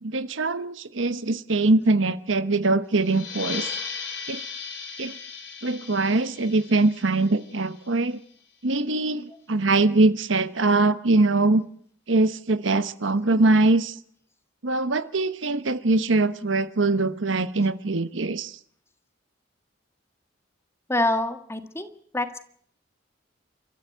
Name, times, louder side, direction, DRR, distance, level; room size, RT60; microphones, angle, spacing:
voice 1, 0.0-3.7 4.3-4.4 5.0-5.1 5.6-8.2 8.6-11.6 12.1-14.0 14.6-18.6, right 2 dB, 85° right, 13 dB, 1.1 m, -22 dB
sound 1, 3.0-8.2, left 5 dB, 90° left, 6.7 m, -37 dB
voice 2, 20.9-21.9 22.1-22.4, left 1 dB, 15° left, 8 dB, 1.6 m, -25 dB
29.5 x 14.0 x 8.1 m, 0.62 s
head